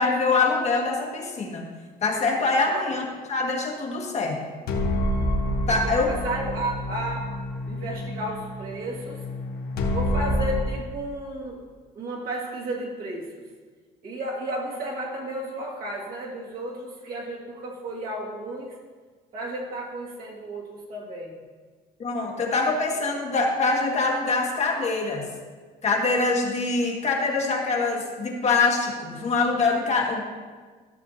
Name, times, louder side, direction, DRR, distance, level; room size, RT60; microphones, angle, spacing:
voice 1, 0.0-1.6 2.0-4.6 5.7-6.1 22.0-25.3 25.8-30.2, left 3 dB, 40° left, 0 dB, 1.4 m, -24 dB
sound 1, 4.7-10.6, left 1 dB, 65° left, 1.3 m, -28 dB
voice 2, 5.7-7.3 7.7-9.2 9.9-11.6 11.9-13.3 14.0-18.7 19.3-21.4, right 1 dB, 60° right, -4 dB, 2.4 m, -33 dB
13.0 x 6.8 x 2.9 m, 1.5 s
cardioid pair, 110°, 17 cm